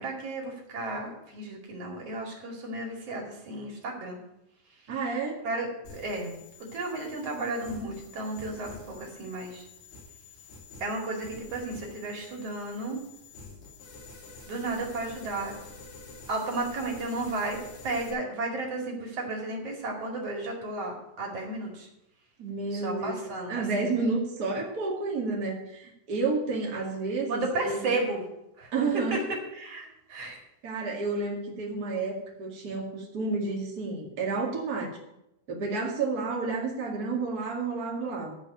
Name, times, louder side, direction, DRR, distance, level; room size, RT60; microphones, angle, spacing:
voice 1, 0.0-4.2 5.4-6.3 6.6-9.7 10.8-13.0 14.5-15.5 16.3-17.6 17.8-21.9 22.7-23.9 27.3-28.2 28.6-28.7 29.1-29.2 29.5-30.4, right 2 dB, 45° right, 0 dB, 2.4 m, -33 dB
voice 2, 4.9-5.4 22.4-27.9 28.7-29.4 30.6-34.9 35.5-38.4, right 3 dB, 90° right, -2 dB, 0.8 m, -30 dB
sound 1, 5.9-18.1, left 3 dB, 80° left, 5.9 m, -48 dB
13.5 x 5.2 x 9.0 m, 0.84 s
omnidirectional pair, 5.6 m